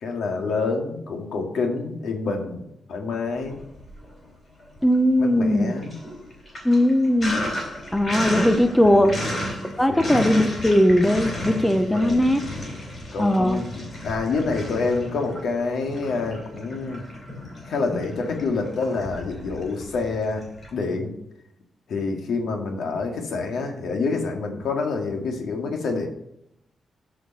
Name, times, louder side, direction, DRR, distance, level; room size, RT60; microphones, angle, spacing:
voice 1, 0.0-2.6 2.9-3.6 5.2-6.0 8.8-9.3 9.7-10.2 11.8-12.2 13.1-17.0 17.7-20.4 20.7-21.1 21.9-26.1, left 4 dB, 80° left, 2 dB, 1.9 m, -27 dB
Sink (filling or washing), 3.4-4.3 4.6-20.7, left 1 dB, 30° left, 3.6 m, -33 dB
voice 2, 4.8-5.7 6.6-7.4 7.9-9.2 9.8-12.4 13.2-13.6, left 1 dB, 5° left, 8 dB, 0.6 m, -19 dB
8.8 x 5.2 x 6.6 m, 0.81 s
wide cardioid pair, 160°, 0 cm